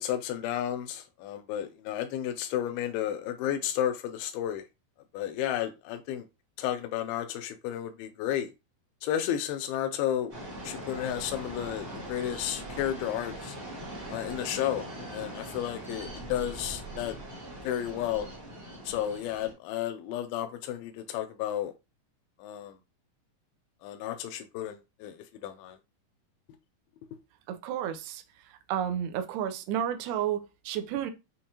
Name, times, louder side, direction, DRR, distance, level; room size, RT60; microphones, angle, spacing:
voice 1, 0.0-4.7 5.1-6.2 6.6-8.5 9.0-10.3 10.6-13.6 14.1-14.9 15.1-17.2 17.6-18.3 18.9-21.7 22.4-22.7 23.8-25.2 25.4-25.8, left 11 dB, 85° left, 2.4 m, -32 dB
sound 1, 10.3-19.5, right 1 dB, 40° right, 0.8 m, -41 dB
voice 2, 27.5-28.2 28.7-31.1, right 10 dB, 80° right, 1.8 m, -31 dB
6.8 x 2.6 x 2.8 m
omnidirectional pair, 4.2 m